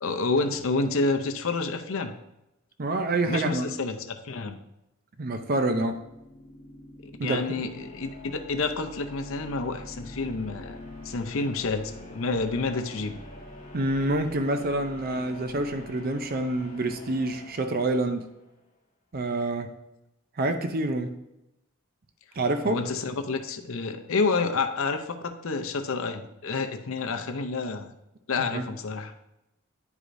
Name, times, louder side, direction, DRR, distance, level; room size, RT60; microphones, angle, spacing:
voice 1, 0.0-2.1 3.3-4.6 7.0-10.8 11.0-13.2 22.7-27.9 28.3-29.1, left 3 dB, 70° left, 6 dB, 0.6 m, -29 dB
voice 2, 2.8-3.7 5.2-6.0 7.2-7.4 13.7-18.3 19.1-19.7 20.4-21.1 22.4-22.8 28.4-28.6, right 2 dB, 45° right, 7 dB, 0.5 m, -27 dB
sound 1, 5.8-18.6, left 1 dB, 35° left, 1.3 m, -45 dB
9.9 x 4.8 x 2.6 m, 0.90 s
head